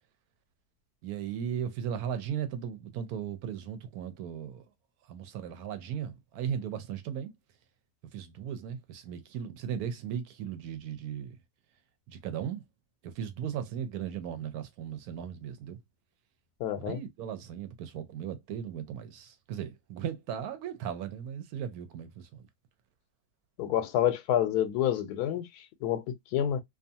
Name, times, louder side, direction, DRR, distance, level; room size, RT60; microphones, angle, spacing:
voice 1, 1.0-4.6 5.1-7.3 8.1-11.4 12.1-12.6 13.2-15.8 16.8-22.5, right 8 dB, 80° right, 1.1 m, -37 dB
voice 2, 16.6-17.0 23.6-26.6, left 10 dB, 90° left, 1.1 m, -28 dB
2.6 x 2.4 x 2.6 m
omnidirectional pair, 1.6 m